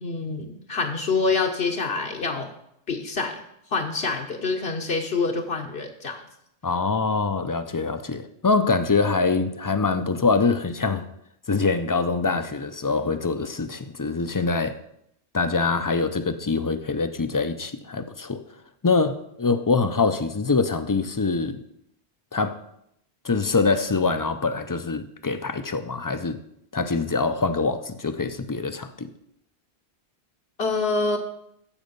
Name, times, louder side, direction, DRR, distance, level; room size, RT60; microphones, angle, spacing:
voice 1, 0.0-2.5 2.9-3.4 3.7-6.2 30.6-31.2, left 4 dB, 70° left, 1.2 m, -26 dB
voice 2, 6.6-11.1 11.5-14.8 15.3-18.4 18.8-21.6 22.3-22.6 23.2-26.4 26.7-29.1, left 4 dB, 30° left, 0.4 m, -24 dB
14.5 x 5.3 x 5.3 m
omnidirectional pair, 1.1 m